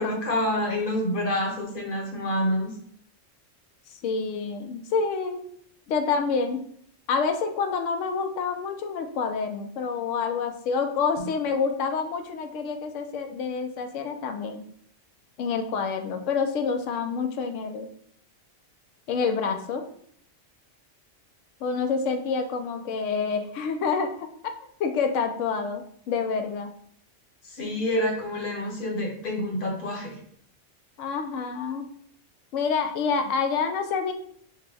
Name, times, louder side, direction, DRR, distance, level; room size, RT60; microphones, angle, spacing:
voice 1, 0.0-2.7 27.6-30.1, left 1 dB, 45° left, 0 dB, 1.0 m, -27 dB
voice 2, 4.0-5.4 5.9-6.6 7.1-14.6 15.4-17.9 19.1-19.8 21.6-24.3 24.8-26.7 31.0-31.9 32.5-34.1, left 5 dB, 80° left, 7 dB, 0.9 m, -27 dB
5.9 x 2.2 x 3.4 m, 0.65 s
omnidirectional pair, 1.3 m